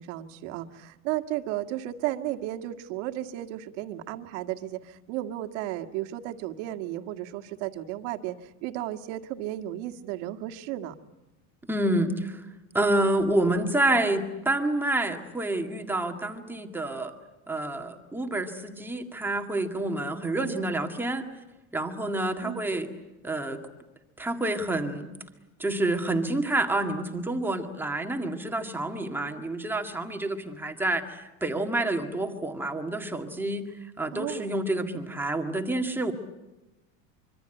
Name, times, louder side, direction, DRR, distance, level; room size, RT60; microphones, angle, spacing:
voice 1, 0.0-11.0 20.4-20.6 22.4-22.6 34.1-34.5, right 14 dB, 75° right, 7 dB, 2.0 m, -34 dB
voice 2, 11.6-12.5 12.7-17.1 17.5-21.3 21.7-22.9 23.2-23.6 24.2-25.1 25.6-36.1, right 1 dB, 5° right, 4 dB, 1.9 m, -28 dB
25.5 x 24.5 x 9.0 m, 1.0 s
cardioid pair, 165°, 36 cm